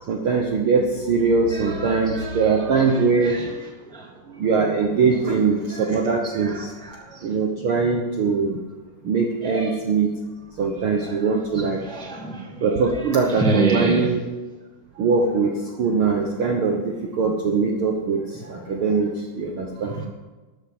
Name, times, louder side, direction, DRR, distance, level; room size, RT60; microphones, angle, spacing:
voice 1, 0.1-3.3 4.3-6.7 7.2-8.6 9.0-10.1 10.6-11.8 12.6-14.2 15.0-15.5 15.8-16.8 17.2-19.1 19.3-20.0, right 4 dB, 60° right, 1.5 m, -21 dB
voice 2, 1.5-3.6 3.9-4.1 5.4-6.0 6.2-7.3 9.4-9.8 11.0-14.1 18.5-18.6 19.8-20.1, right 3 dB, ahead, 1.5 m, -30 dB
13.0 x 7.4 x 8.0 m
omnidirectional pair, 3.6 m